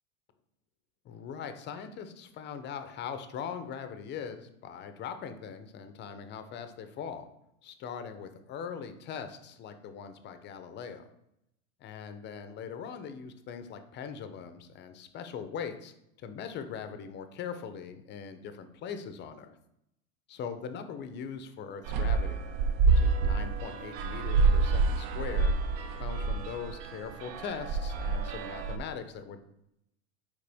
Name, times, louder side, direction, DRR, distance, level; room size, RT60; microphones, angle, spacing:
voice 1, 1.0-7.3 7.6-11.1 11.8-19.6 20.3-22.4 22.9-25.5 26.0-29.4, left 7 dB, 25° left, 9 dB, 0.6 m, -41 dB
sound 1, 21.9-28.8, right 4 dB, 50° right, 0.8 m, -28 dB
6.8 x 4.7 x 3.4 m, 0.80 s
hypercardioid pair, 120°, 41 cm